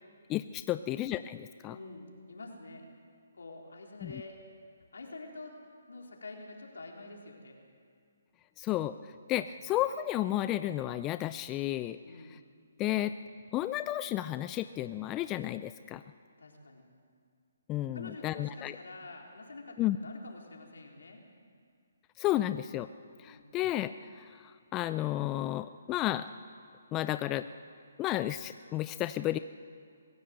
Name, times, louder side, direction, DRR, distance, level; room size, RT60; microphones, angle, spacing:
voice 1, 0.3-1.8 4.0-4.2 8.6-12.4 12.8-13.2 13.5-16.0 17.7-18.8 19.8-20.0 22.2-22.9 23.2-26.3 26.9-27.5 28.0-29.4, left 14 dB, 20° left, 12 dB, 0.4 m, -32 dB
voice 2, 1.7-2.8 3.3-4.4 4.9-5.6 5.9-7.6 12.0-12.4 16.4-16.9 17.9-21.2 23.2-23.5, left 2 dB, 80° left, 1 dB, 4.1 m, -47 dB
23.5 x 16.0 x 7.9 m, 2.2 s
hypercardioid pair, 150°, 0 cm